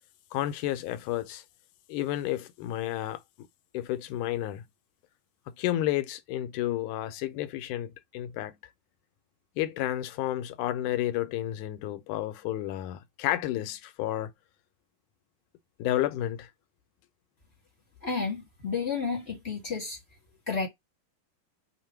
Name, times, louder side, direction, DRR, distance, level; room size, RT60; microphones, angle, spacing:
voice 1, 0.3-1.4 1.9-3.2 3.7-4.6 5.6-8.6 9.6-14.3 15.8-16.5, left 13 dB, 80° left, 2.0 m, -31 dB
voice 2, 18.0-20.0 20.5-20.7, left 5 dB, 40° left, 0.9 m, -31 dB
5.6 x 2.2 x 4.3 m
omnidirectional pair, 3.6 m